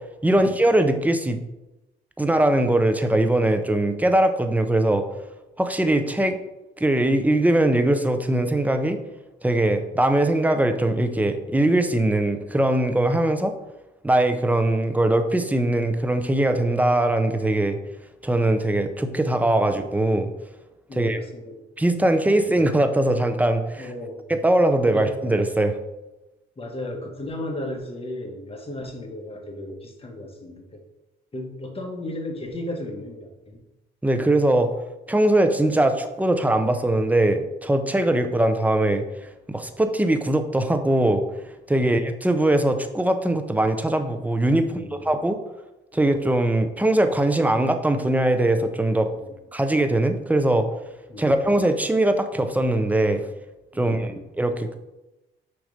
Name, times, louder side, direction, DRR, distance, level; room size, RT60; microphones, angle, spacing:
voice 1, 0.2-1.4 2.2-5.0 5.6-6.4 6.8-9.0 9.4-13.5 14.0-17.8 18.2-20.3 21.0-21.2 21.8-23.9 24.4-25.7 34.0-34.7 35.1-39.0 39.5-41.2 41.7-45.4 45.9-49.1 49.5-50.7 51.2-53.2 53.8-54.1 54.4-54.7, right 1 dB, 10° right, 8 dB, 0.6 m, -21 dB
voice 2, 20.9-21.6 23.8-24.2 24.9-25.1 26.6-30.8 31.3-33.6 44.6-45.1 49.1-49.3 51.1-51.3 53.7-54.2, left 1 dB, 30° left, 1 dB, 1.4 m, -35 dB
6.3 x 3.1 x 5.1 m, 1.0 s
cardioid pair, 90°, 20 cm